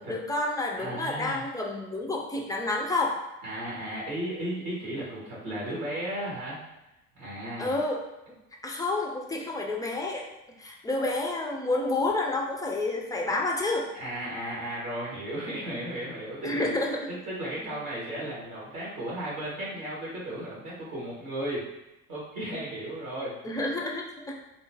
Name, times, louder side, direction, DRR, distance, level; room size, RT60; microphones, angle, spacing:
voice 1, 0.1-3.2 7.6-8.0 8.3-8.4 8.6-13.9 16.4-17.1 17.6-17.7 23.4-24.3, left 2 dB, 10° left, 0 dB, 0.3 m, -29 dB
voice 2, 0.8-1.4 3.4-6.6 7.2-7.7 13.9-16.7 17.1-21.6 22.1-23.3, right 1 dB, 80° right, -7 dB, 1.4 m, -35 dB
2.9 x 2.0 x 3.2 m, 0.95 s
figure-of-eight pair, 55°, 43 cm